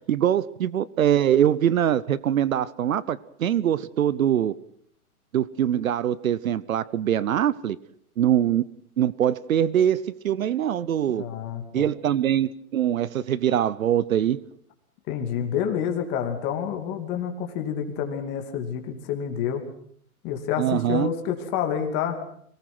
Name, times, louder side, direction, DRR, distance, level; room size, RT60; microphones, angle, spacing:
voice 1, 0.0-4.5 5.3-7.8 8.2-8.6 9.0-11.3 11.7-14.4 20.6-21.1, right 10 dB, 65° right, 0.9 m, -23 dB
voice 2, 11.1-11.9 15.1-19.6 20.2-22.2, left 8 dB, 25° left, 2.6 m, -28 dB
25.5 x 19.0 x 6.1 m
hypercardioid pair, 160°, 45 cm